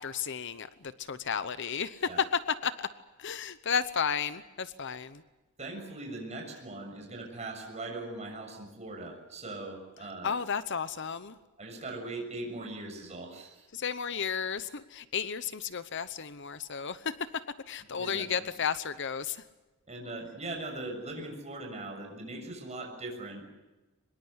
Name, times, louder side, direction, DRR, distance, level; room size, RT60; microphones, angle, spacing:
voice 1, 0.0-2.9 3.2-5.2 10.2-11.4 13.7-17.3 17.7-19.4, left 6 dB, 55° left, 13 dB, 0.9 m, -33 dB
voice 2, 5.6-10.3 11.6-13.7 18.0-18.3 19.9-23.5, right 2 dB, 30° right, 2 dB, 6.8 m, -40 dB
24.5 x 21.5 x 8.1 m, 1.1 s
head